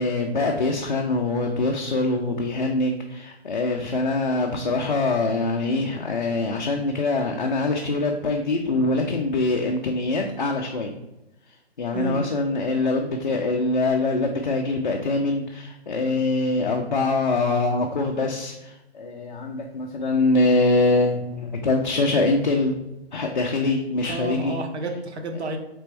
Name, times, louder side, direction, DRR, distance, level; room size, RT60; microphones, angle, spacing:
voice 1, 0.0-10.9 11.5-22.8 23.1-24.6, left 2 dB, 45° left, 1 dB, 0.4 m, -24 dB
voice 2, 24.1-25.6, right 2 dB, 80° right, 4 dB, 0.8 m, -30 dB
4.2 x 3.4 x 3.3 m, 0.92 s
hypercardioid pair, 170°, 33 cm